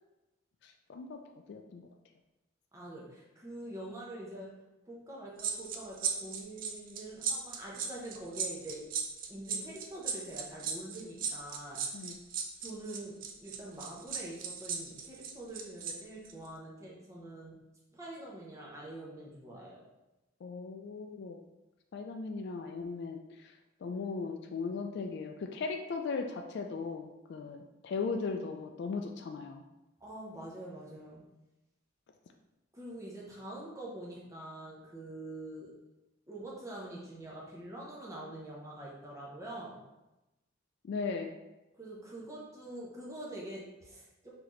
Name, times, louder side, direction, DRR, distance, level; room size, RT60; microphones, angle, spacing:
voice 1, 0.6-1.2 1.5-1.8 11.9-12.2 20.4-21.4 21.9-29.6 40.8-41.3, left 4 dB, 55° left, 3 dB, 0.3 m, -38 dB
voice 2, 2.7-8.9 9.3-11.9 12.6-17.6 17.9-19.8 30.0-31.2 32.7-35.7 36.3-39.8 41.7-44.3, right 1 dB, 15° right, -5 dB, 0.8 m, -45 dB
sound 1, 5.4-15.9 16.2-16.5, right 7 dB, 40° right, 0.4 m, -36 dB
4.0 x 2.8 x 3.1 m, 0.99 s
head